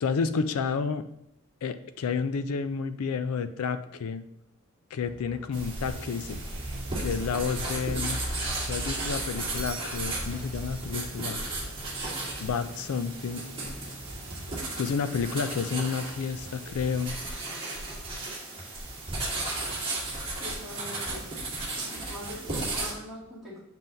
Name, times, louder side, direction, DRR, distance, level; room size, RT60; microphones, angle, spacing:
voice 1, 0.0-1.0 1.6-4.2 4.9-6.4 7.0-8.2 8.7-11.4 12.4-13.4 14.8-17.1, left 5 dB, 80° left, 11 dB, 0.4 m, -30 dB
sound 1, 5.0-17.1, right 1 dB, 60° right, 1.0 m, -50 dB
sound 2, 5.5-22.9, right 2 dB, 25° right, 1.6 m, -34 dB
Bell / Doorbell, 9.4-11.2, right 5 dB, 45° right, 0.6 m, -46 dB
voice 2, 20.4-21.3 21.8-23.6, equal, ahead, -11 dB, 2.6 m, -42 dB
7.3 x 5.6 x 2.6 m, 0.78 s
head